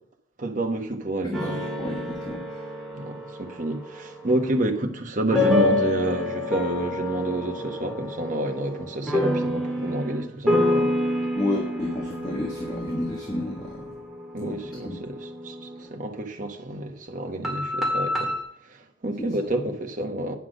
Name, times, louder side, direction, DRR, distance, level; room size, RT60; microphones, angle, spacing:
voice 1, 0.4-1.6 2.9-10.9 14.3-18.3 18.6-20.4, right 1 dB, 40° right, 1.2 m, -29 dB
voice 2, 1.2-2.6 11.4-14.0 14.4-14.5 14.8-15.0, left 1 dB, 20° left, 1.3 m, -31 dB
sound 1, 1.3-4.8 5.3-16.0 17.4-18.4, left 2 dB, ahead, 1.8 m, -28 dB
9.3 x 5.9 x 6.3 m
head